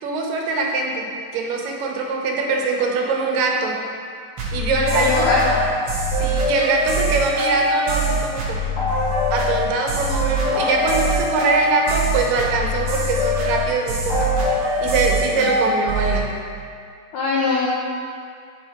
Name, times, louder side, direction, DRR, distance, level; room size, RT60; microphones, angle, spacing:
voice 1, 0.0-1.1 1.3-3.8 4.5-5.3 6.2-8.6 9.3-14.3 14.8-16.3, right 3 dB, 80° right, 0 dB, 2.4 m, -23 dB
sound 1, 4.4-16.2, equal, 60° right, 1.4 m, -23 dB
voice 2, 4.9-5.6 15.4-15.5 17.1-17.7, left 3 dB, 75° left, -4 dB, 1.7 m, -21 dB
sound 2, 5.2-8.0 8.8-13.3 14.1-15.9, left 1 dB, 45° left, 0.7 m, -30 dB
8.7 x 4.6 x 4.4 m, 2.2 s
omnidirectional pair, 3.9 m